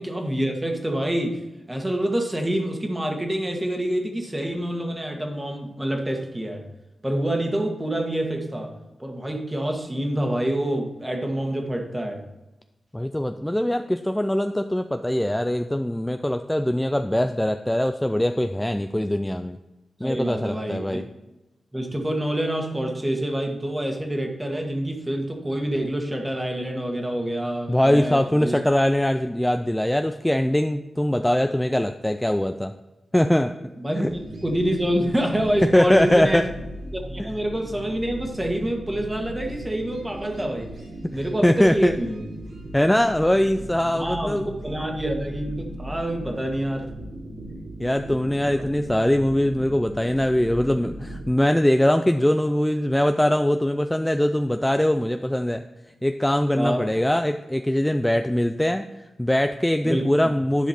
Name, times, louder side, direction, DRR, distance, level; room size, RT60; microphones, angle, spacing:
voice 1, 0.0-6.6 7.0-8.7 9.0-12.2 20.0-21.0 21.7-28.6 33.8-34.0 34.3-36.5 36.9-40.7 41.1-42.2 43.9-46.9 48.4-48.6 56.6-56.9 59.8-60.3, right 1 dB, 15° right, 3 dB, 1.5 m, -27 dB
voice 2, 12.9-19.6 20.0-21.0 27.7-32.7 33.1-33.5 33.9-34.1 35.6-36.5 37.2-37.3 41.0-41.1 41.4-41.9 42.7-44.5 47.8-55.6 56.0-58.9 59.2-60.7, left 1 dB, 10° left, 7 dB, 0.4 m, -22 dB
sound 1, 34.1-51.3, right 1 dB, 85° right, 2.4 m, -38 dB
10.5 x 5.1 x 4.3 m, 1.0 s
cardioid pair, 75°, 0 cm